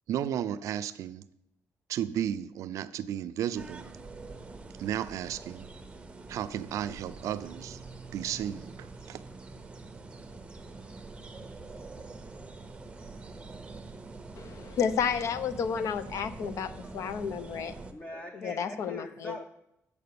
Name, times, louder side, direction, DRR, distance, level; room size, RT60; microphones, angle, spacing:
voice 1, 0.1-1.2 1.9-3.9 4.8-5.7 6.3-7.8 8.1-9.2, right 10 dB, 70° right, 0.4 m, -33 dB
sound 1, 3.6-17.9, right 3 dB, 20° right, 0.6 m, -45 dB
voice 2, 14.4-17.7 18.3-19.4, left 7 dB, 65° left, 0.6 m, -31 dB
voice 3, 17.9-19.4, left 1 dB, 20° left, 0.6 m, -42 dB
7.7 x 4.9 x 6.8 m
cardioid pair, 125°, 6 cm